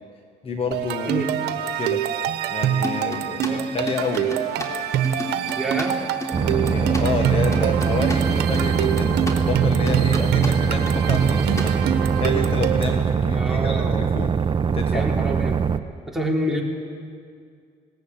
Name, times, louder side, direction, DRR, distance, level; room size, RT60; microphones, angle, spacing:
voice 1, 0.4-1.2 1.5-2.0 2.5-4.3 6.3-14.3 14.7-15.2, left 4 dB, 35° left, 4 dB, 1.7 m, -29 dB
sound 1, 0.7-13.0, right 9 dB, 80° right, 1.3 m, -25 dB
sound 2, 2.8-7.0 7.4-9.4 9.7-10.5 10.9-11.7, left 1 dB, 20° left, 3.4 m, -33 dB
voice 2, 5.5-6.0 13.3-14.1 14.9-15.6 16.1-16.6, right 1 dB, ahead, -2 dB, 3.7 m, -27 dB
sound 3, 6.3-15.8, right 6 dB, 30° right, 0.8 m, -22 dB
19.5 x 18.5 x 9.1 m, 2.2 s
cardioid pair, 110°, 17 cm